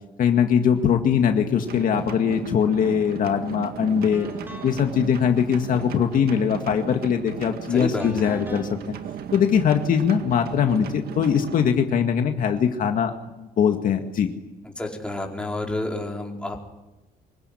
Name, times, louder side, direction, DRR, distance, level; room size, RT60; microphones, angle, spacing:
voice 1, 0.2-4.3 4.6-8.9 9.3-13.1 13.4-14.3, left 7 dB, 55° left, 5 dB, 2.0 m, -21 dB
sound 1, 1.6-11.7, right 8 dB, 65° right, 2.1 m, -36 dB
sound 2, 3.3-3.5 4.1-4.9 8.0-8.7, equal, 10° right, 4.0 m, -40 dB
voice 2, 7.7-8.4 14.8-16.6, left 2 dB, 5° left, 0 dB, 4.6 m, -30 dB
25.5 x 16.0 x 9.9 m, 1.0 s
cardioid pair, 110°, 17 cm